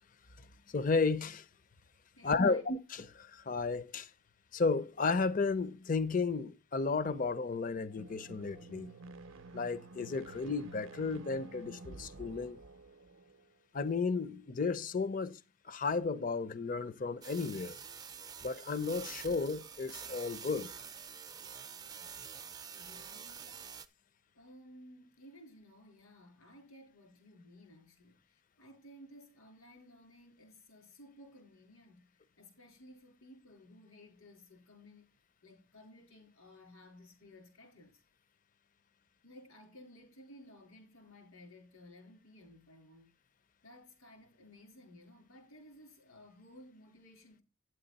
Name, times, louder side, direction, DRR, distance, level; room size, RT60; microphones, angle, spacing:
voice 1, 0.7-1.4 2.2-4.1 4.5-8.9 9.5-12.6 13.7-15.4 15.7-17.8 18.4-20.7, left 4 dB, 40° left, 0.5 m, -33 dB
voice 2, 2.2-2.6 22.7-23.6 24.3-32.1 32.4-35.1 35.4-38.0 39.2-43.1 43.6-47.4, left 1 dB, 85° left, 3.9 m, -57 dB
sound 1, 7.9-13.5, right 2 dB, 65° right, 0.6 m, -51 dB
sound 2, 17.2-23.9, right 7 dB, 20° right, 0.4 m, -47 dB
9.4 x 7.8 x 4.0 m
head